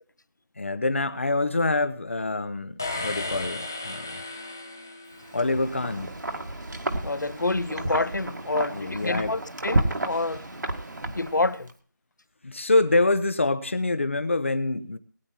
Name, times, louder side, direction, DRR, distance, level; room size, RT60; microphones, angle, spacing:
voice 1, 0.6-4.2 5.3-6.2 8.7-9.4 12.4-15.0, left 2 dB, 40° left, 1.0 m, -26 dB
sound 1, 2.8-5.6, left 2 dB, 10° left, 0.5 m, -35 dB
Wind, 5.2-11.7, right 1 dB, 65° right, 1.9 m, -31 dB
voice 2, 7.0-10.5 11.1-11.7, left 2 dB, 65° left, 0.9 m, -28 dB
21.0 x 9.8 x 2.9 m
figure-of-eight pair, 175°, 11 cm